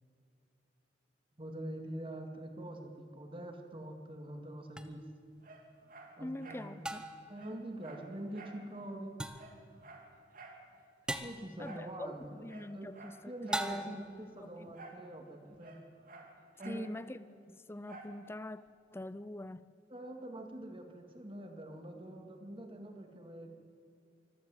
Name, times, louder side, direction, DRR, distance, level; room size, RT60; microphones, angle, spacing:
voice 1, 1.4-5.0 6.2-6.9 7.3-9.3 11.2-12.5 12.7-12.9 13.3-15.8 16.6-16.9 19.9-23.5, right 1 dB, 30° right, 4 dB, 2.1 m, -45 dB
sound 1, 4.8-4.9 6.8-7.3 9.2-9.6 11.1-11.5 13.5-14.1, right 1 dB, 5° right, 0.9 m, -38 dB
Dog, 5.4-6.7 7.0-7.1 7.3-8.6 9.0-9.1 9.3-10.6 11.6-11.9 12.4-13.8 14.7-15.1 15.3-16.9 17.9-18.2 18.7-18.8, right 3 dB, 50° right, 2.7 m, -52 dB
voice 2, 6.2-7.0 11.6-12.2 12.4-14.1 14.4-14.7 16.7-18.6 18.9-19.7, left 1 dB, 15° left, 16 dB, 0.5 m, -44 dB
24.5 x 14.5 x 8.0 m, 2.5 s
head